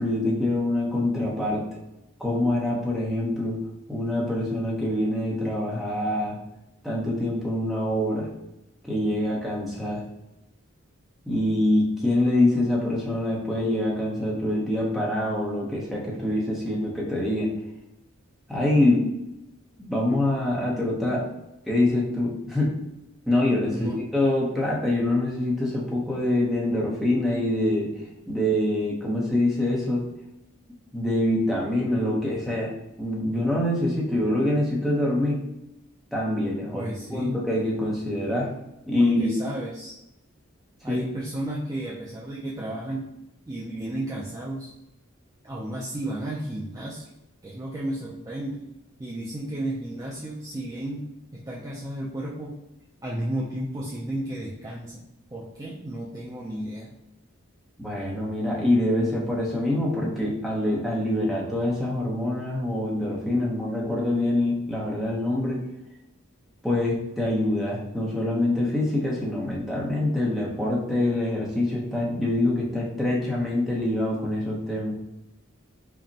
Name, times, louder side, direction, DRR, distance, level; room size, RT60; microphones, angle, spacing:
voice 1, 0.0-1.7 2.2-3.6 3.9-6.4 6.8-8.3 8.8-10.0 11.2-17.5 18.5-19.1 19.8-21.2 21.7-22.7 23.3-27.9 28.3-30.0 30.9-32.7 33.0-35.4 36.1-38.5 38.9-39.3 40.9-41.0 57.8-65.6 66.6-74.9, left 1 dB, ahead, -5 dB, 0.7 m, -25 dB
voice 2, 23.7-24.0 36.7-37.4 39.0-40.0 40.8-43.1 43.5-44.7 45.4-47.1 47.4-48.7 49.0-52.6 53.0-55.0 55.3-56.9, right 1 dB, 15° right, -4 dB, 0.3 m, -33 dB
5.1 x 2.1 x 2.7 m, 0.90 s
head